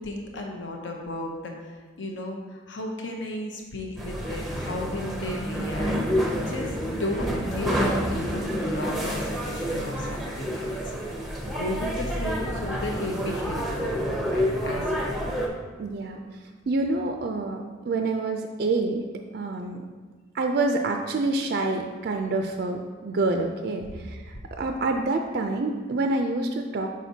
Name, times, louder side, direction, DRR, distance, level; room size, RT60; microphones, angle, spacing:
voice 1, 0.0-7.8 8.1-15.1 23.8-23.9, left 1 dB, 65° left, 1 dB, 0.7 m, -34 dB
sound 1, 4.0-15.5, equal, ahead, 0.6 m, -28 dB
voice 2, 15.8-16.2 16.7-19.0 19.3-19.8 20.3-26.9, right 2 dB, 50° right, 4 dB, 0.3 m, -27 dB
6.1 x 5.8 x 2.7 m, 1.5 s
head